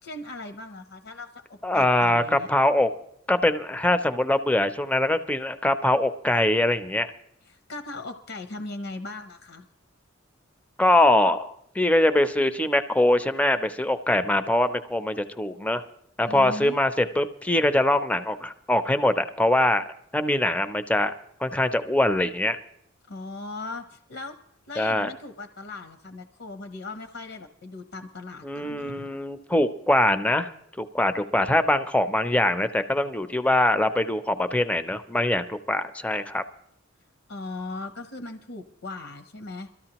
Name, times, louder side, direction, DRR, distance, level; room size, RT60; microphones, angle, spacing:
voice 1, 0.0-2.5 7.4-9.7 16.2-16.8 23.1-24.4 24.7-29.1 37.3-39.7, left 2 dB, 75° left, 7 dB, 0.8 m, -38 dB
voice 2, 1.6-2.9 3.3-7.1 10.8-15.8 16.2-19.8 20.1-21.1 21.4-22.6 24.8-25.1 28.4-30.5 30.8-36.4, left 1 dB, 5° left, 11 dB, 0.4 m, -23 dB
22.5 x 13.5 x 2.9 m, 0.74 s
head